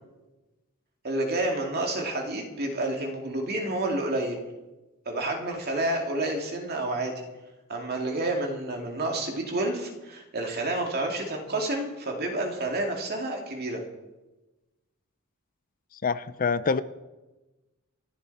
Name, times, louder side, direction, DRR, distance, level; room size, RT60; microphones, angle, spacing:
voice 1, 1.0-4.4 5.1-7.1 7.7-13.8, right 2 dB, 45° right, 1 dB, 2.5 m, -29 dB
voice 2, 16.0-16.8, left 5 dB, 40° left, 14 dB, 0.5 m, -25 dB
27.5 x 10.5 x 4.2 m, 1.1 s
head